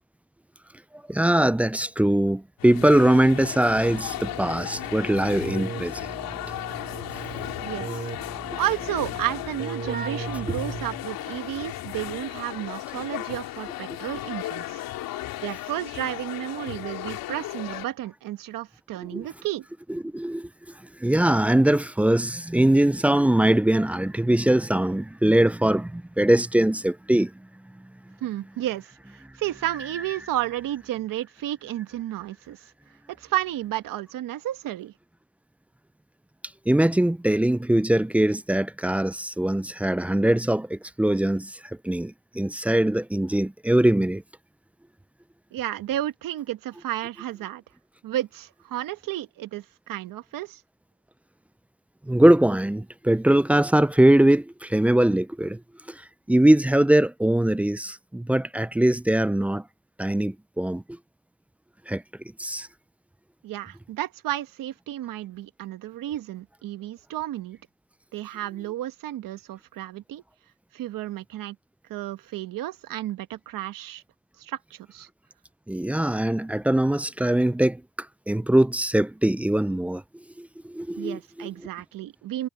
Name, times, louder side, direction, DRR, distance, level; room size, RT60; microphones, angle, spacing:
voice 1, 1.1-6.1 7.0-7.1 10.5-10.6 19.1-19.3 19.9-20.5 21.0-27.3 36.7-44.2 52.1-55.6 55.9-56.0 56.3-59.6 60.0-60.8 61.9-62.0 62.4-62.7 75.7-77.8 78.3-80.0 80.4-81.5, right 1 dB, 5° right, 0.4 m, -22 dB
sound 1, 2.6-17.9, left 15 dB, 85° left, 3.1 m, -35 dB
Keyboard (musical), 3.7-11.2, right 5 dB, 30° right, 4.0 m, -38 dB
voice 2, 7.6-8.0 8.6-14.8 15.4-19.6 28.2-28.9 29.4-32.6 33.1-34.9 45.5-47.6 48.0-50.6 63.4-67.6 68.1-70.2 70.7-71.6 71.9-74.0 74.4-75.1 81.0-82.5, right 13 dB, 70° right, 1.5 m, -32 dB
cardioid pair, 110°, 34 cm